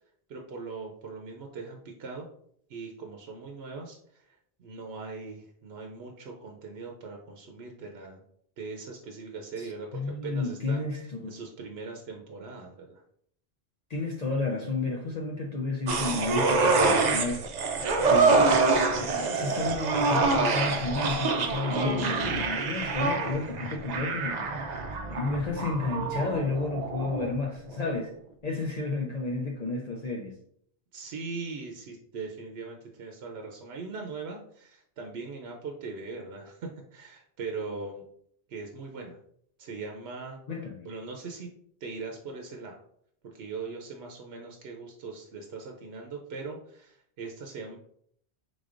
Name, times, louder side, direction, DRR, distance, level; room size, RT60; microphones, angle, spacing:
voice 1, 0.3-2.3 2.7-8.2 8.6-13.0 30.9-38.0 38.5-39.2 39.6-40.4 40.8-41.5 41.8-42.8 43.2-47.8, right 4 dB, 75° right, 0.9 m, -40 dB
voice 2, 9.6-11.3 13.9-17.4 18.1-18.6 18.9-24.7 25.1-28.2 28.4-30.4 40.5-40.9, left 3 dB, 50° left, 0.6 m, -32 dB
sound 1, 15.9-27.4 27.7-27.8, right 3 dB, 55° right, 0.6 m, -26 dB
5.0 x 3.8 x 2.5 m
omnidirectional pair, 1.1 m